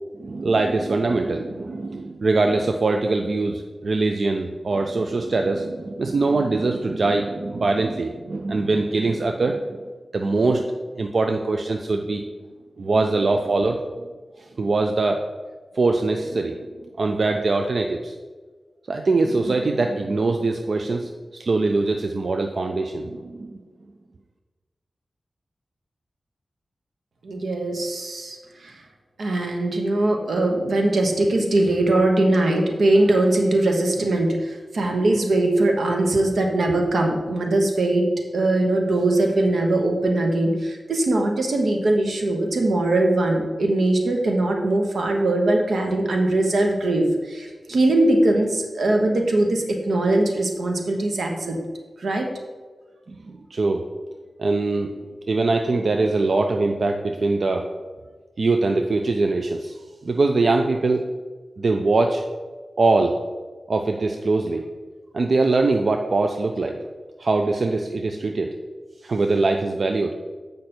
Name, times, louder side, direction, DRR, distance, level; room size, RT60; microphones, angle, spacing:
voice 1, 0.1-9.8 10.1-12.2 12.8-13.8 14.4-15.2 15.7-16.7 17.0-18.1 18.9-23.6 53.1-53.8 54.4-54.9 55.3-57.7 58.4-59.8 60.0-61.0 61.6-62.2 62.8-63.2 63.7-64.6 65.1-66.8 67.2-68.5 69.0-70.2, right 3 dB, 55° right, 4 dB, 0.4 m, -22 dB
voice 2, 27.2-28.8 29.2-51.6 52.0-52.3, right 2 dB, 80° right, 2 dB, 1.1 m, -21 dB
7.9 x 5.2 x 4.3 m, 1.4 s
wide cardioid pair, 120°, 0 cm